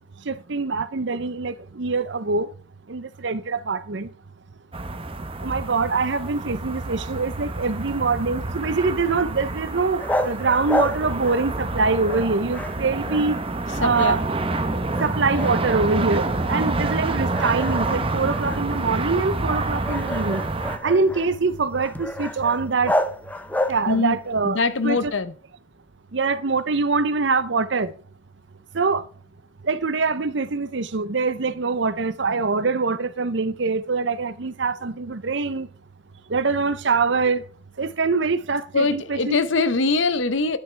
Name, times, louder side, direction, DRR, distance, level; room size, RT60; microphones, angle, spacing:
voice 1, 0.3-2.5 2.9-4.1 5.4-13.4 13.8-14.2 15.0-20.4 20.8-22.9 23.7-25.1 26.1-27.9 28.7-29.0 29.6-35.7 36.3-37.4 37.8-39.4, right 4 dB, 60° right, 0.7 m, -24 dB
sound 1, 4.7-20.8, right 2 dB, 30° right, 0.9 m, -28 dB
sound 2, 10.0-11.7 12.0-13.6 13.9-14.6 14.9-16.1 16.6-16.7 17.3-24.1, left 1 dB, 10° left, 0.6 m, -30 dB
voice 2, 13.7-14.1 23.9-25.3 38.7-40.6, left 3 dB, 70° left, 0.9 m, -23 dB
10.5 x 9.3 x 3.4 m
head